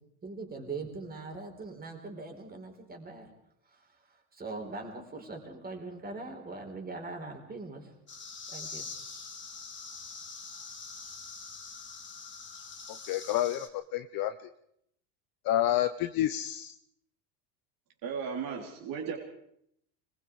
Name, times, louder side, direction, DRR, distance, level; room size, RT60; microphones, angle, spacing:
voice 1, 0.2-3.3 3.7-7.9 8.5-8.9, right 3 dB, 20° right, 3 dB, 4.8 m, -41 dB
sound 1, 8.1-13.7, left 5 dB, 25° left, 3.7 m, -44 dB
voice 2, 13.1-14.3 15.4-16.7, left 12 dB, 45° left, 9 dB, 1.0 m, -29 dB
voice 3, 18.0-19.2, right 6 dB, 45° right, 0 dB, 3.6 m, -35 dB
25.0 x 21.5 x 4.9 m, 0.74 s
supercardioid pair, 120°, 48 cm